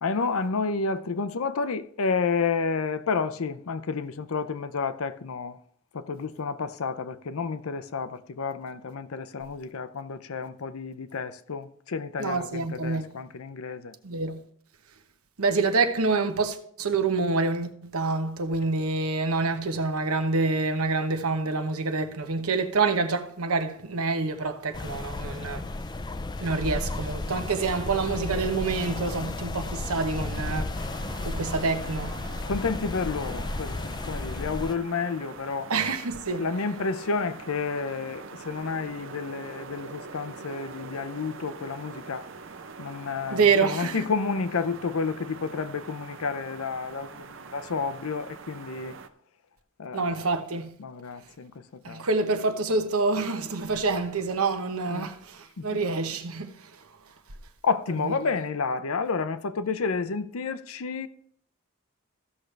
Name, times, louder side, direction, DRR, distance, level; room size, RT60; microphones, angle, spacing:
voice 1, 0.0-5.6 5.9-13.9 32.5-35.7 36.3-42.3 42.8-48.9 49.8-50.2 50.8-52.0 54.9-55.1 55.6-55.8 57.6-61.1, left 4 dB, 80° left, 0.6 m, -30 dB
voice 2, 12.2-13.1 14.0-14.4 15.4-25.6 26.4-30.7 31.2-32.2 35.7-36.5 43.3-44.0 49.9-50.7 51.8-56.8 58.0-58.1, right 4 dB, 85° right, 1.0 m, -27 dB
sound 1, 24.7-34.8, left 2 dB, 20° left, 0.3 m, -33 dB
sound 2, 30.7-49.1, right 4 dB, 60° right, 0.7 m, -44 dB
15.0 x 6.5 x 3.3 m
head